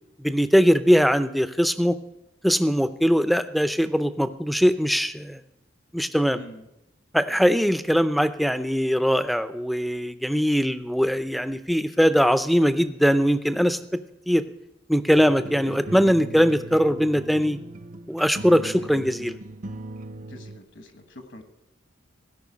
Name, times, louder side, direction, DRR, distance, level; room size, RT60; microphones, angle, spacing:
voice 1, 0.2-2.0 2.4-5.4 5.9-6.4 7.1-14.0 14.3-14.4 14.9-17.6 18.1-19.4, equal, ahead, 11 dB, 0.5 m, -21 dB
voice 2, 6.2-6.7 7.9-8.0 12.1-12.2 18.6-19.0 20.3-21.4, left 1 dB, 65° left, 7 dB, 1.4 m, -45 dB
sound 1, 15.1-20.6, right 2 dB, 40° right, 0.7 m, -38 dB
17.0 x 5.7 x 8.5 m, 0.88 s
head